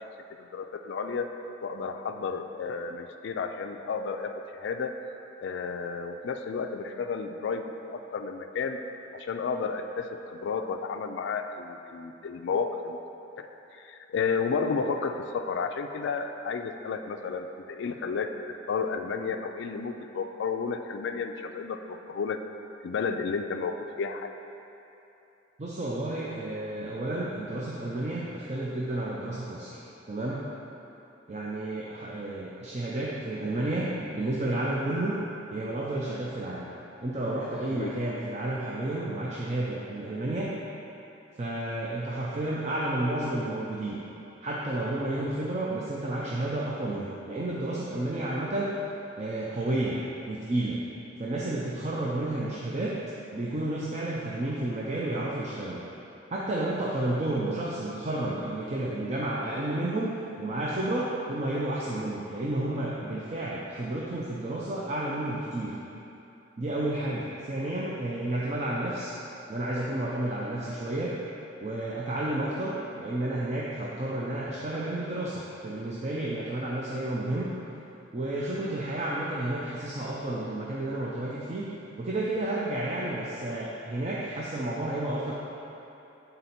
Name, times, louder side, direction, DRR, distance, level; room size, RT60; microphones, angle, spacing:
voice 1, 0.5-1.3 1.6-4.3 4.6-5.0 5.4-8.8 9.1-13.0 13.4-13.5 13.7-22.4 22.8-24.3 37.7-37.9, left 5 dB, 65° left, 6 dB, 0.3 m, -32 dB
voice 2, 25.6-29.8 30.1-30.4 31.3-35.2 35.5-36.7 37.0-40.5 41.4-44.0 44.4-48.7 49.2-50.0 50.3-50.8 51.2-52.9 53.3-55.8 56.3-65.8 66.6-69.2 69.5-71.2 71.6-77.5 78.1-81.7 82.0-85.3, right 1 dB, 35° right, -5 dB, 0.5 m, -31 dB
8.1 x 4.0 x 4.2 m, 2.9 s
head